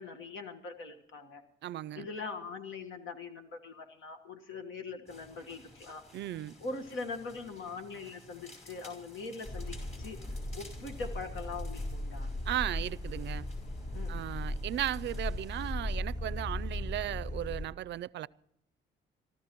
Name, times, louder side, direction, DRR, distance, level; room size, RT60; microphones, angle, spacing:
voice 1, 0.0-1.4 1.9-6.0 6.6-10.3 10.5-12.3 13.9-14.2, left 4 dB, 75° left, 1.5 m, -42 dB
voice 2, 1.6-2.1 6.1-6.5 12.5-13.5 14.1-18.3, right 13 dB, 65° right, 0.4 m, -36 dB
sound 1, 5.1-15.7, left 2 dB, 35° left, 4.7 m, -55 dB
sound 2, 9.4-17.6, left 1 dB, 55° left, 4.7 m, -37 dB
26.0 x 13.0 x 3.0 m
cardioid pair, 90°, 20 cm